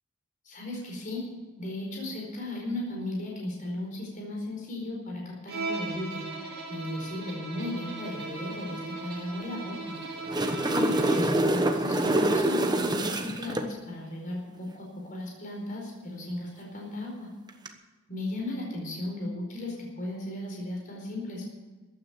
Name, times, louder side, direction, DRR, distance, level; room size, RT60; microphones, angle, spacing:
voice 1, 0.4-1.3 1.6-6.2 6.7-9.9 10.7-17.3 18.1-21.4, left 1 dB, 40° left, -2 dB, 4.7 m, -36 dB
Bowed string instrument, 5.5-11.4, right 4 dB, 55° right, 5.5 m, -38 dB
sound 1, 10.0-13.7 17.5-17.7, right 1 dB, 20° right, 1.1 m, -25 dB
14.5 x 9.7 x 8.2 m, 1.2 s
head